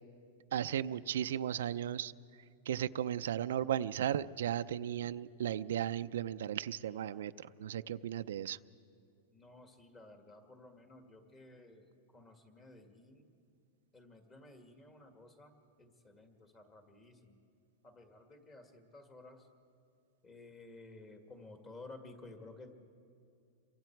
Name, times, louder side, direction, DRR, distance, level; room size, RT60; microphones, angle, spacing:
voice 1, 0.5-2.1 2.7-8.6, right 10 dB, 85° right, 11 dB, 0.5 m, -35 dB
voice 2, 9.3-13.3 13.9-17.4 17.8-19.5 20.2-22.7, left 2 dB, 20° left, 5 dB, 1.9 m, -55 dB
28.0 x 23.5 x 4.6 m, 2.4 s
supercardioid pair, 160°, 0 cm